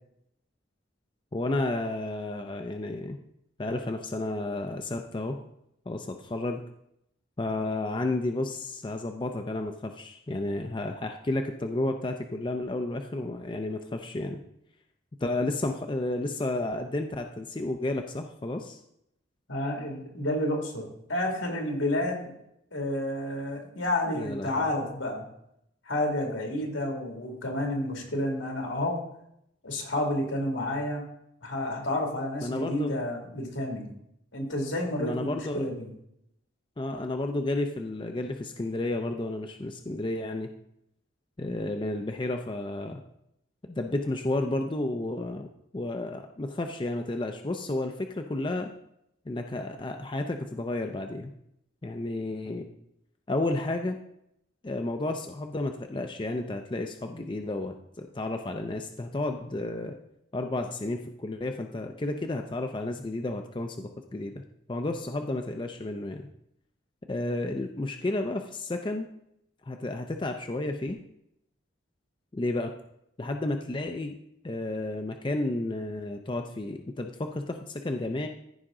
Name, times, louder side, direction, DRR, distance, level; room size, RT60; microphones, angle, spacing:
voice 1, 1.3-3.2 3.6-5.4 5.9-6.6 7.4-14.4 15.2-18.8 24.1-24.7 32.4-32.9 35.0-35.7 36.8-40.5 41.4-43.0 43.6-45.5 45.7-48.7 49.3-51.3 51.8-52.7 53.3-54.0 54.6-60.0 60.3-64.4 64.7-66.3 67.1-69.1 69.6-71.0 72.3-72.7 73.2-74.2 74.4-78.3, left 2 dB, 25° left, 5 dB, 0.4 m, -32 dB
voice 2, 19.5-22.3 22.7-25.2 25.9-29.0 29.6-31.0 31.4-33.9 34.3-35.9 52.4-52.6, left 1 dB, 80° left, 2 dB, 2.3 m, -30 dB
14.5 x 5.1 x 3.7 m, 0.78 s
head